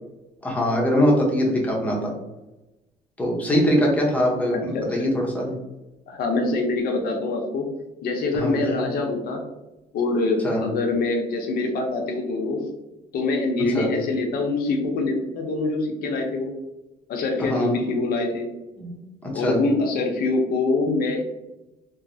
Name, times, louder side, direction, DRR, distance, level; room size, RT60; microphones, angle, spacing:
voice 1, 0.4-2.1 3.2-5.5 8.3-8.9 10.4-10.6 13.7-13.9 17.4-17.8 18.8-19.6, equal, 10° left, -2 dB, 0.8 m, -23 dB
voice 2, 4.5-5.1 6.1-7.7 8.0-9.4 9.9-12.6 13.1-16.5 17.1-18.5 19.3-21.2, left 3 dB, 60° left, 2 dB, 0.7 m, -24 dB
3.1 x 2.0 x 2.6 m, 1.0 s
cardioid pair, 110°, 17 cm